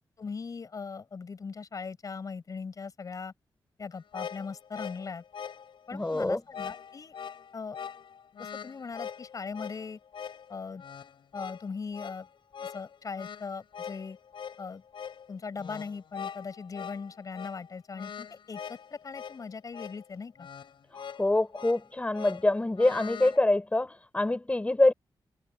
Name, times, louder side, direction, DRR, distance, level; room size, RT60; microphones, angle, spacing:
voice 1, 0.2-3.3 3.8-5.2 5.9-7.1 7.5-7.8 8.4-10.0 10.5-10.8 11.3-12.3 12.7-14.2 14.6-14.8 15.3-20.5, left 5 dB, 45° left, 6.2 m, -39 dB
sound 1, 3.9-23.4, left 7 dB, 80° left, 5.2 m, -43 dB
voice 2, 5.9-6.4 21.2-24.9, left 2 dB, 15° left, 6.6 m, -25 dB
wide cardioid pair, 145°, 8 cm